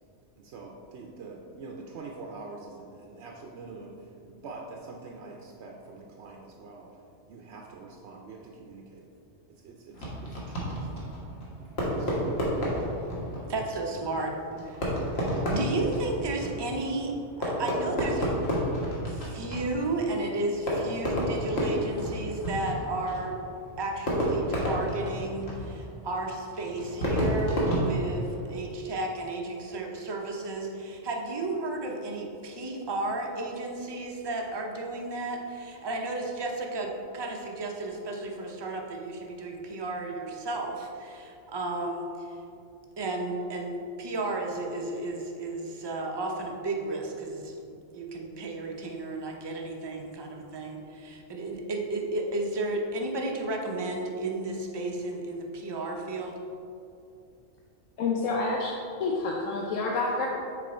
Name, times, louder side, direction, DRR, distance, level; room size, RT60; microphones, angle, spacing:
voice 1, 0.4-6.9 7.3-9.1 9.5-11.1 11.8-12.6, right 3 dB, 65° right, 0 dB, 0.8 m, -45 dB
Fireworks, 9.9-28.7, equal, 55° left, 1.5 m, -31 dB
voice 2, 13.5-14.3 14.6-14.9 15.5-18.4 19.1-23.4 23.8-42.3 43.0-47.6 47.9-56.4, right 2 dB, 30° right, 1 dB, 0.4 m, -33 dB
voice 3, 58.0-58.7 59.0-60.3, left 3 dB, 80° left, -1 dB, 1.0 m, -28 dB
6.5 x 4.1 x 4.3 m, 2.6 s
omnidirectional pair, 1.3 m